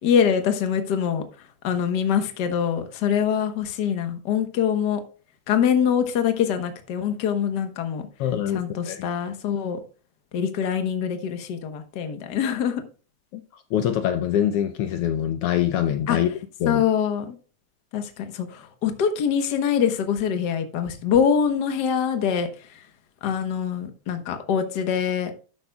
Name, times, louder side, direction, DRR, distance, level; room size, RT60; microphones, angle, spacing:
voice 1, 0.0-1.3 1.6-5.0 5.5-8.0 8.5-9.8 10.3-12.8 16.1-16.2 16.6-17.3 17.9-22.5 23.2-25.3, left 8 dB, 60° left, 1.1 m, -24 dB
voice 2, 8.2-9.0 13.3-16.3 16.6-16.8, left 10 dB, 90° left, 1.2 m, -24 dB
12.0 x 8.9 x 2.3 m
omnidirectional pair, 3.4 m